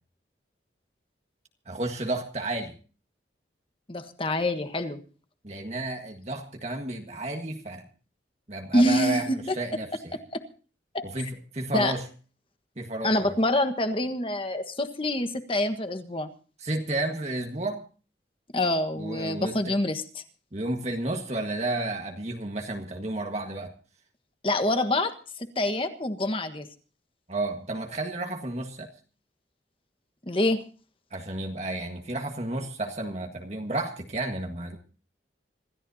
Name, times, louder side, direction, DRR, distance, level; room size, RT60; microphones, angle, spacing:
voice 1, 1.6-2.7 5.4-7.9 8.5-10.2 11.0-12.0 12.8-13.4 16.6-17.8 18.9-19.8 20.5-23.7 27.3-28.9 31.1-34.8, right 2 dB, 35° right, 3 dB, 1.7 m, -32 dB
voice 2, 3.9-5.0 8.7-9.5 10.3-10.4 10.9-11.0 11.7-12.0 13.0-16.3 18.5-20.2 24.4-26.7 30.3-30.6, left 1 dB, 30° left, 8 dB, 1.4 m, -26 dB
26.5 x 14.5 x 2.8 m, 0.38 s
head